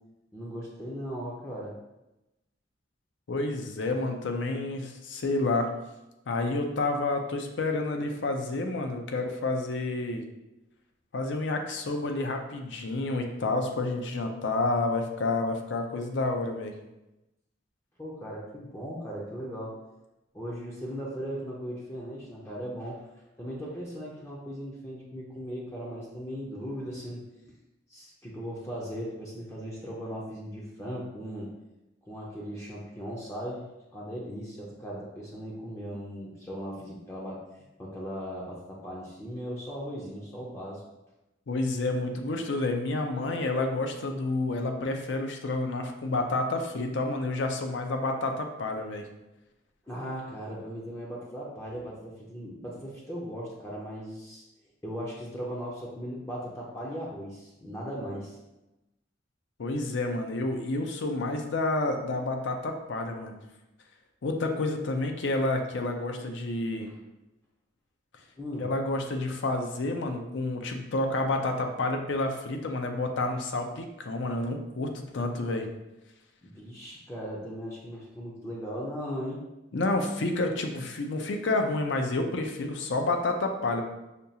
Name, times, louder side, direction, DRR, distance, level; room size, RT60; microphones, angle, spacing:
voice 1, 0.3-1.8 18.0-19.7 20.3-23.1 23.4-27.2 27.9-31.5 32.0-37.4 37.8-40.8 49.9-54.4 54.8-58.4 66.8-67.0 68.4-68.7 76.4-79.4, equal, 15° left, -4 dB, 0.5 m, -38 dB
voice 2, 3.3-5.7 6.3-10.2 11.1-16.7 41.5-49.1 59.6-63.4 64.2-66.9 68.6-75.7 79.7-83.8, left 2 dB, 70° left, 4 dB, 0.5 m, -29 dB
5.1 x 2.3 x 2.7 m, 0.97 s
head